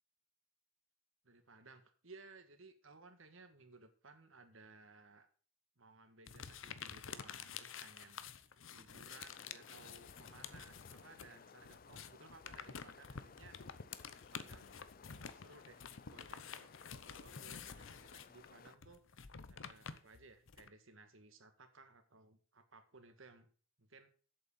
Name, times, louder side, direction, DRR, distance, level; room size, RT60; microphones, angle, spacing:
voice 1, 1.2-5.3 5.8-8.2 8.7-13.6 14.3-14.8 15.3-23.5 23.8-24.1, right 3 dB, 75° right, 8 dB, 1.8 m, -60 dB
sound 1, 6.3-11.3 11.6-20.7, left 7 dB, 70° left, 0.8 m, -50 dB
sound 2, 9.1-18.8, left 6 dB, 45° left, 0.4 m, -60 dB
8.2 x 7.6 x 7.2 m, 0.42 s
head